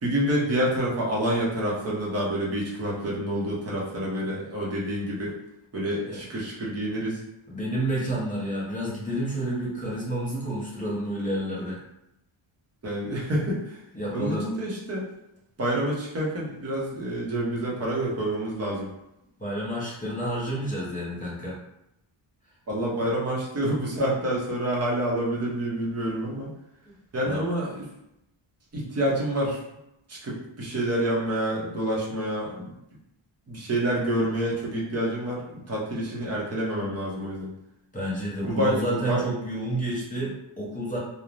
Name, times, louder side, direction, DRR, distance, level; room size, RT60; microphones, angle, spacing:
voice 1, 0.0-5.3 5.7-7.2 12.8-13.8 14.1-15.1 15.6-18.9 22.7-26.5 27.1-27.9 28.7-29.6 30.1-32.7 33.5-37.5 38.4-39.2, right 1 dB, 30° right, -5 dB, 0.7 m, -28 dB
voice 2, 7.5-11.8 13.9-14.5 19.4-21.6 26.9-27.0 27.2-27.4 37.9-41.0, right 1 dB, 15° left, -6 dB, 0.6 m, -30 dB
3.1 x 2.1 x 2.5 m, 0.84 s
wide cardioid pair, 170°, 50 cm